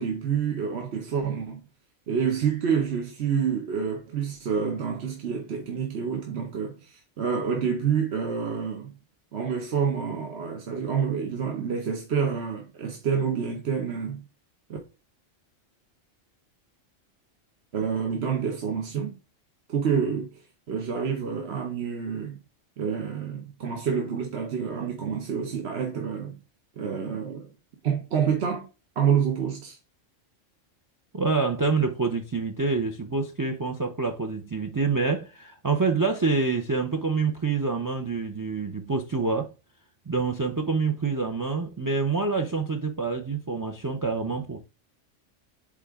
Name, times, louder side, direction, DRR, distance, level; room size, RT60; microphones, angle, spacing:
voice 1, 0.0-1.6 2.1-8.9 9.3-14.2 14.7-14.8 17.7-19.1 19.7-22.4 22.8-26.4 26.8-27.5 27.8-28.7 29.0-29.8, right 7 dB, 60° right, 1.1 m, -28 dB
voice 2, 31.1-39.5 40.1-44.6, right 4 dB, 25° right, 0.4 m, -26 dB
8.3 x 3.7 x 3.5 m
omnidirectional pair, 1.3 m